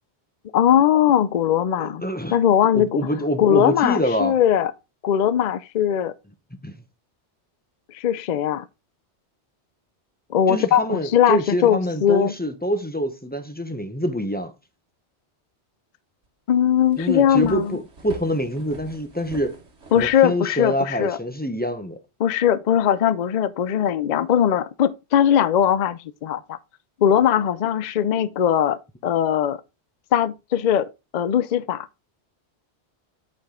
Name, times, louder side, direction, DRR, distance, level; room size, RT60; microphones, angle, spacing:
voice 1, 0.5-2.0 2.3-3.1 3.4-4.7 5.0-6.1 7.9-8.7 10.3-12.3 16.5-17.8 19.9-21.2 22.2-26.6 27.0-29.6 30.1-31.9, left 9 dB, 50° left, 0.5 m, -20 dB
voice 2, 1.8-2.4 2.7-4.3 6.5-6.7 10.5-14.5 17.0-19.6 19.9-22.0, equal, 10° left, 0.7 m, -25 dB
sound 1, 16.3-16.4 16.7-20.9, right 2 dB, 85° right, 1.8 m, -43 dB
8.5 x 5.0 x 3.7 m
omnidirectional pair, 1.1 m